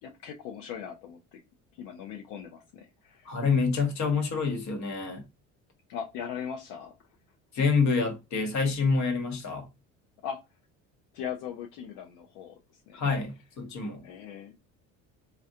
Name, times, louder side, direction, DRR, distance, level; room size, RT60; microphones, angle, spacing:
voice 1, 0.0-1.4 1.8-3.3 5.9-6.9 10.2-10.4 11.1-12.6 12.9-13.0 14.0-14.5, left 8 dB, 85° left, 0.6 m, -39 dB
voice 2, 3.3-5.2 7.5-9.7 12.9-14.0, left 4 dB, 55° left, 1.1 m, -27 dB
3.6 x 2.2 x 2.7 m
supercardioid pair, 95°, 34 cm